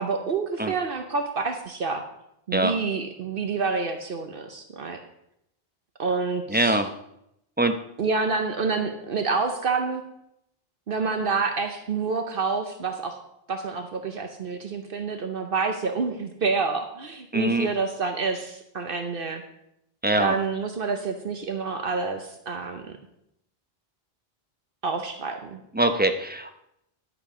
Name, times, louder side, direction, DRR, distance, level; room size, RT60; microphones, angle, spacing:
voice 1, 0.0-2.0 2.5-5.0 6.0-6.8 8.0-10.0 10.9-13.2 13.5-19.4 20.2-22.9 24.8-25.6, right 4 dB, 65° right, 6 dB, 1.0 m, -28 dB
voice 2, 6.5-6.9 7.6-7.8 17.3-17.7 20.0-20.3 25.7-26.6, right 1 dB, 10° right, 6 dB, 0.7 m, -23 dB
11.0 x 8.2 x 4.9 m, 0.80 s
omnidirectional pair, 1.0 m